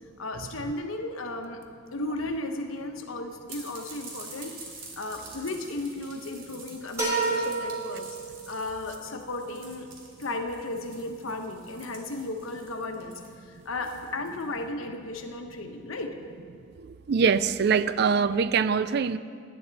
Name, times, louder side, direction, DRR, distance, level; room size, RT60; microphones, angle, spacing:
voice 1, 0.2-1.6 1.9-4.6 5.0-8.2 8.5-9.9 10.2-16.1, left 2 dB, 90° left, 4 dB, 1.1 m, -35 dB
sound 1, 3.5-14.6, right 3 dB, 85° right, 2.5 m, -47 dB
sound 2, 7.0-8.7, right 3 dB, 15° right, 3.3 m, -29 dB
voice 2, 16.8-19.2, right 6 dB, 55° right, 14 dB, 0.4 m, -24 dB
17.0 x 10.5 x 4.1 m, 2.2 s
head